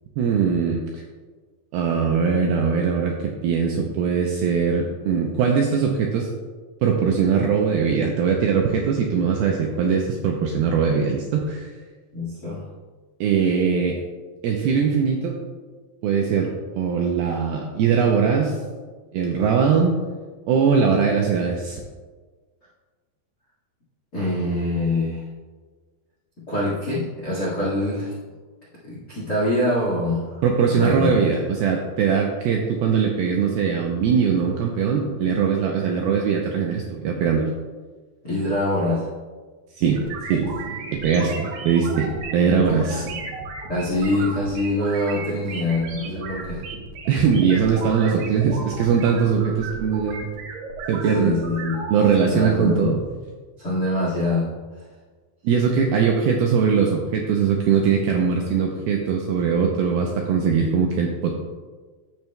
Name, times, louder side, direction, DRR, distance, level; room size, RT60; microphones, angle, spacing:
voice 1, 0.2-1.0 1.7-6.3 6.8-11.7 13.2-14.0 14.4-15.4 16.0-18.6 19.1-20.0 20.5-21.8 30.4-37.5 39.8-40.0 40.3-43.0 47.1-50.3 50.9-51.4 51.9-53.0 55.4-61.3, right 6 dB, 85° right, 1 dB, 2.2 m, -21 dB
voice 2, 12.1-12.7 24.1-25.2 26.5-28.1 28.8-30.4 30.7-31.2 38.2-39.1 42.4-43.2 43.7-46.7 51.1-51.8 52.3-53.0 53.6-54.6, left 1 dB, 80° left, -6 dB, 0.9 m, -24 dB
sound 1, 39.9-53.0, right 3 dB, 70° right, 2.3 m, -35 dB
14.0 x 6.1 x 2.2 m, 1.4 s
omnidirectional pair, 5.0 m